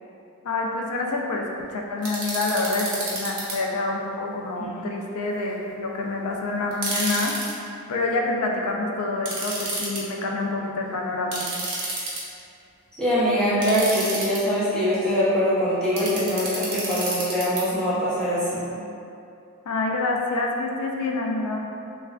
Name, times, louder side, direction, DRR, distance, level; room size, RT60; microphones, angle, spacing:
voice 1, 0.4-7.6 7.9-11.5 19.7-21.7, left 2 dB, 85° left, 0 dB, 0.4 m, -27 dB
sound 1, 2.0-3.5 6.7-7.5 9.3-10.0 11.3-12.4 13.6-14.4 16.0-17.6, right 2 dB, 60° right, 0.7 m, -29 dB
voice 2, 13.0-18.6, equal, 5° left, -12 dB, 0.6 m, -23 dB
3.3 x 2.4 x 2.2 m, 2.6 s
head